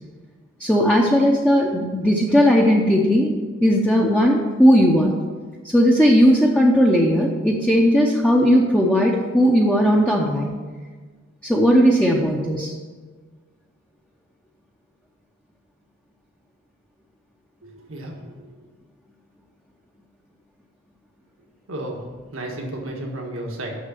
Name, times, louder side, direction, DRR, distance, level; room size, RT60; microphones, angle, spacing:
voice 1, 0.6-3.3 3.6-5.1 5.6-10.5 11.4-12.7, equal, 5° left, -3 dB, 0.7 m, -17 dB
voice 2, 17.6-18.3 21.7-22.0 22.3-23.7, right 1 dB, 80° right, 0 dB, 1.5 m, -32 dB
6.5 x 6.4 x 7.6 m, 1.4 s
head